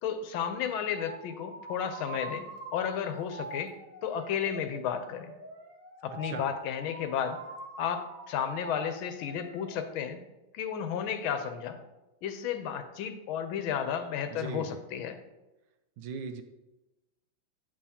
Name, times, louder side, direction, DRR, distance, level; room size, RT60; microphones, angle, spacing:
voice 1, 0.0-2.4 2.7-3.7 4.0-5.3 6.0-7.4 7.8-10.2 10.5-11.8 12.2-15.2, left 8 dB, 80° left, 8 dB, 1.4 m, -33 dB
sound 1, 0.9-9.8, right 3 dB, 60° right, 1.7 m, -45 dB
voice 2, 14.3-14.8 16.0-16.4, right 5 dB, 75° right, 8 dB, 1.2 m, -38 dB
8.6 x 7.2 x 2.8 m, 1.0 s
omnidirectional pair, 2.3 m